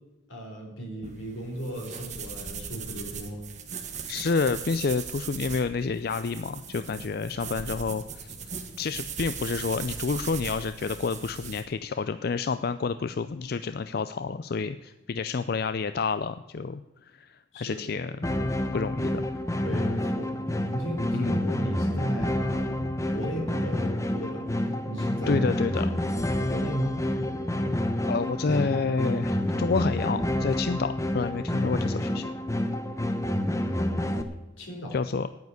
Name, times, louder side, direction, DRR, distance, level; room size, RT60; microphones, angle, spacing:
voice 1, 0.3-3.4 17.5-18.0 19.6-20.4 20.7-25.5 26.5-27.6 34.6-35.0, equal, 85° left, 1 dB, 4.1 m, -36 dB
sound 1, 1.0-11.6, right 6 dB, 40° right, 1.4 m, -39 dB
voice 2, 4.1-8.4 8.8-18.1 18.4-19.2 21.1-21.4 25.3-25.9 28.1-32.3 34.9-35.3, left 4 dB, 50° left, 12 dB, 0.4 m, -29 dB
sound 2, 18.2-34.2, left 1 dB, 15° left, 0.9 m, -28 dB
9.7 x 9.4 x 8.0 m, 1.0 s
head